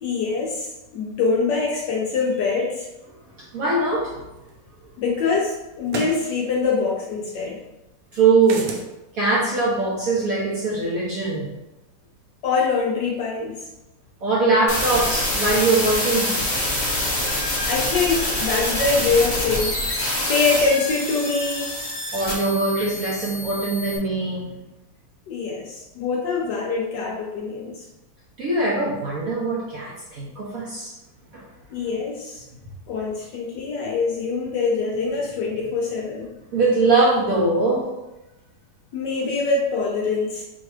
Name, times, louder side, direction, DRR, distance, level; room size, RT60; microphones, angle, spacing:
voice 1, 0.0-2.9 5.0-7.6 12.4-13.7 17.7-19.8 20.3-21.8 22.8-22.9 25.3-27.9 31.7-32.4 32.9-36.4 38.9-40.4, left 4 dB, 75° left, -1 dB, 1.1 m, -24 dB
voice 2, 3.4-4.3 8.1-8.7 9.1-11.5 14.2-16.4 22.1-24.6 28.4-30.9 31.3-31.4 36.5-37.9, right 3 dB, 60° right, -5 dB, 0.9 m, -22 dB
sound 1, 4.5-4.6 5.9-6.2 8.4-8.9, right 4 dB, 75° right, 1.4 m, -31 dB
sound 2, 14.7-24.0, left 1 dB, 35° left, 1.5 m, -26 dB
4.3 x 2.4 x 4.7 m, 0.99 s
omnidirectional pair, 2.3 m